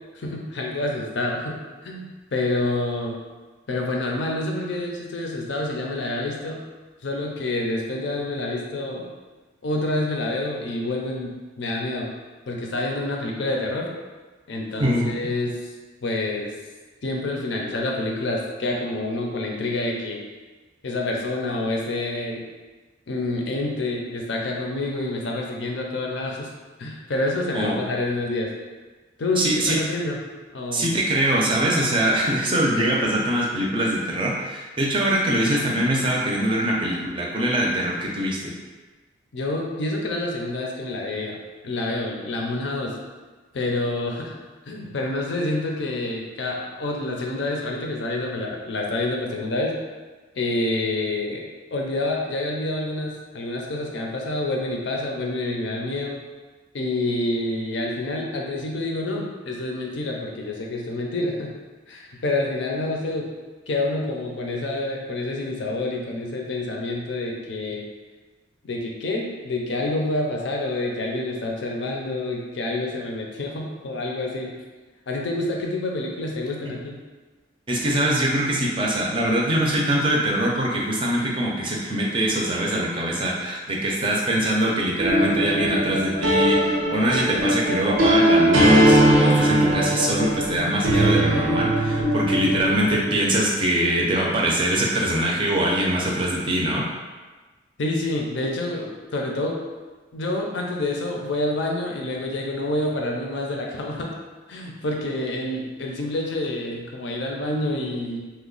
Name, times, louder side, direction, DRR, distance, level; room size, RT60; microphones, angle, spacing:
voice 1, 0.1-3.2 3.7-6.6 7.0-9.1 9.6-12.1 12.5-13.9 14.5-15.7 16.0-16.5 17.0-20.2 20.8-22.4 23.1-26.5 26.8-28.5 29.2-30.2 30.5-30.9 39.3-41.4 41.6-42.9 43.5-44.3 44.7-49.8 50.4-51.4 51.7-56.2 56.7-61.5 61.9-63.3 63.7-67.8 68.6-74.5 75.1-77.0 97.8-99.6 100.1-104.1 104.5-108.2, left 2 dB, 65° left, 0 dB, 0.5 m, -27 dB
voice 2, 14.8-15.1 27.5-27.8 29.4-29.8 30.7-38.5 77.7-96.8, right 1 dB, 25° right, -3 dB, 0.5 m, -23 dB
sound 1, 85.0-93.0, right 1 dB, 85° right, 0.6 m, -20 dB
3.0 x 2.2 x 3.8 m, 1.3 s
head